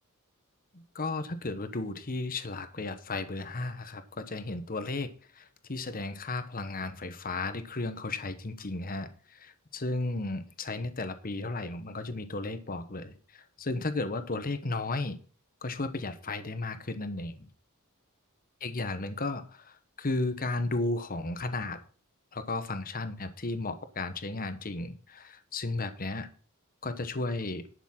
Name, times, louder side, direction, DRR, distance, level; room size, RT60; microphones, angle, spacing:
voice 1, 0.9-5.1 5.3-15.2 15.6-17.5 18.6-21.8 22.3-26.3 26.8-27.6, left 2 dB, 40° left, 10 dB, 1.1 m, -34 dB
11.0 x 7.2 x 5.9 m, 0.40 s
head